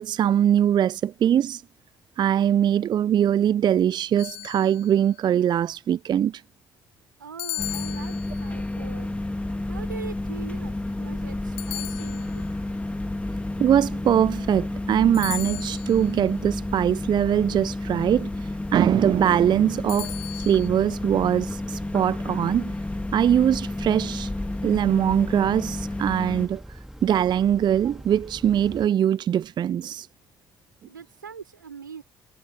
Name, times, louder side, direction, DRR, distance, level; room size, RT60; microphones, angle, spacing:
voice 1, 0.0-1.6 2.2-6.4 13.6-22.7 23.1-24.3 24.6-30.1, right 10 dB, 45° right, 0.5 m, -22 dB
sound 1, 4.2-5.1 7.4-8.6 11.6-12.6 15.1-16.1 19.9-20.7, left 22 dB, 65° left, 0.6 m, -36 dB
voice 2, 7.2-9.2 9.6-12.5 30.9-32.0, right 6 dB, 90° right, 3.9 m, -42 dB
sound 2, 7.6-26.5, left 2 dB, 15° left, 2.3 m, -31 dB
Car / Idling / Accelerating revving vroom, 9.0-28.9, equal, 5° right, 2.5 m, -43 dB
figure-of-eight pair, 45°, 10 cm